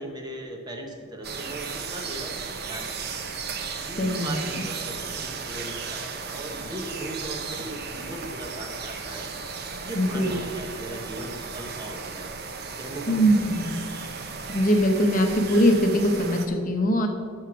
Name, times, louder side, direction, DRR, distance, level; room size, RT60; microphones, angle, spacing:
voice 1, 0.0-2.9 3.2-3.3 3.8-9.3 9.8-12.3 12.8-13.6, right 1 dB, 20° right, 2 dB, 0.9 m, -38 dB
sound 1, 1.2-16.5, right 5 dB, 50° right, 0.8 m, -35 dB
voice 2, 4.0-4.4 9.9-10.3 13.1-13.8 14.5-17.1, equal, 40° left, 4 dB, 0.9 m, -22 dB
12.0 x 4.8 x 6.0 m, 2.2 s
head